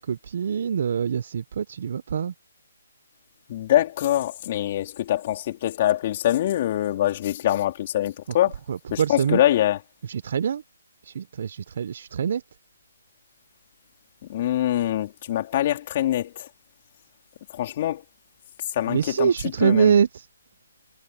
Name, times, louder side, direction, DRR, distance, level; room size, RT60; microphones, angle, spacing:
voice 1, 0.0-2.3 8.7-9.4 10.1-10.6 11.1-12.4 18.9-20.1, right 7 dB, 50° right, 0.9 m, -24 dB
voice 2, 3.5-8.5 8.9-9.8 14.3-16.5 17.5-18.0 18.7-19.9, left 13 dB, 35° left, 4.2 m, -24 dB
hypercardioid pair, 155°, 0 cm